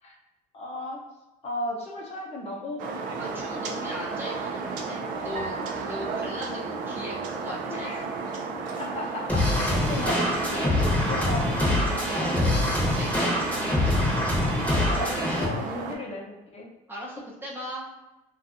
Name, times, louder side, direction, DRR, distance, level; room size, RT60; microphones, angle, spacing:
voice 1, 0.5-1.0 1.4-2.8 3.2-4.0 7.7-8.0 8.8-11.8 12.4-12.5 14.4-14.6 14.8-16.7, left 1 dB, 50° left, -2 dB, 0.7 m, -35 dB
sound 1, 2.8-16.0, right 4 dB, 75° right, 0.4 m, -33 dB
voice 2, 3.2-7.9 12.1-13.3 16.9-17.8, equal, 15° right, -4 dB, 0.6 m, -38 dB
sound 2, 5.3-7.8, right 2 dB, 50° right, 0.9 m, -43 dB
sound 3, 9.3-15.5, left 1 dB, 10° left, 0.9 m, -25 dB
2.5 x 2.3 x 2.5 m, 1.0 s
cardioid pair, 105°, 14 cm